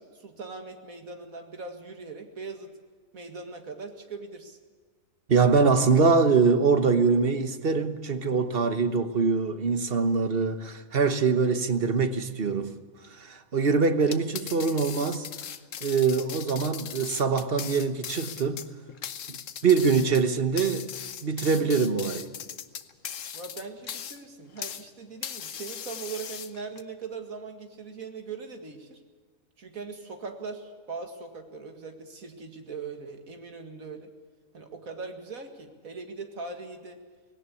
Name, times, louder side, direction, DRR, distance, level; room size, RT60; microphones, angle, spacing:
voice 1, 0.0-2.7 3.1-4.6 23.3-29.0 29.6-34.1 34.5-37.0, right 4 dB, 85° right, 2.5 m, -40 dB
voice 2, 5.3-12.7 13.1-15.3 15.8-18.6 19.3-20.9 21.2-22.3, right 5 dB, 45° right, 1.3 m, -24 dB
sound 1, 14.0-24.9 25.2-26.8, left 8 dB, 65° left, 1.2 m, -39 dB
19.0 x 18.0 x 8.3 m
omnidirectional pair, 1.4 m